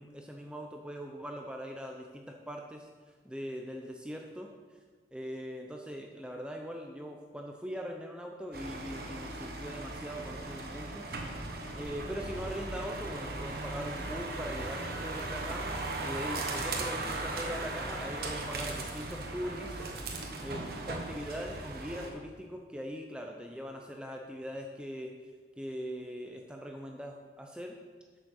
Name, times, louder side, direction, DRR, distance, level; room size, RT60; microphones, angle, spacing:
voice 1, 0.0-2.9 3.3-4.5 5.1-11.1 11.7-25.1 25.6-27.8, equal, 5° right, 2 dB, 0.6 m, -41 dB
sound 1, 8.5-22.1, right 2 dB, 55° right, 1.3 m, -38 dB
8.4 x 6.6 x 6.4 m, 1.4 s
head